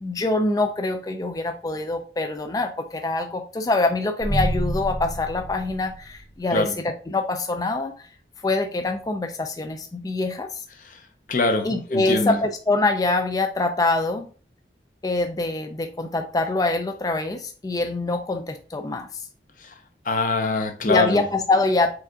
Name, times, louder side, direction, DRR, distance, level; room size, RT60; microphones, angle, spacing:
voice 1, 0.0-8.1 8.4-10.6 11.6-14.3 15.0-19.3 20.8-21.9, left 2 dB, 20° left, 0.3 m, -24 dB
sound 1, 4.2-6.5, right 1 dB, 40° right, 0.5 m, -28 dB
voice 2, 11.3-12.4 20.1-21.2, left 3 dB, 50° left, 0.7 m, -23 dB
4.7 x 2.5 x 3.8 m
head